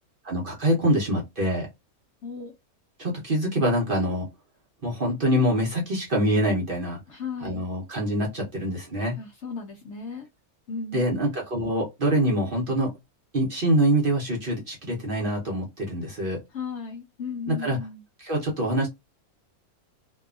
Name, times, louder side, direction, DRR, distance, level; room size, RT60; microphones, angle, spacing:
voice 1, 0.2-1.7 3.0-4.3 4.8-7.0 7.4-9.2 10.9-12.9 13.3-16.4 17.5-17.8 18.2-18.9, equal, 45° right, 0.8 m, -25 dB
voice 2, 2.2-2.5 7.1-7.7 9.2-10.3 10.7-11.3 16.5-18.0, left 5 dB, 60° left, 0.8 m, -35 dB
2.7 x 2.3 x 2.3 m
omnidirectional pair, 1.6 m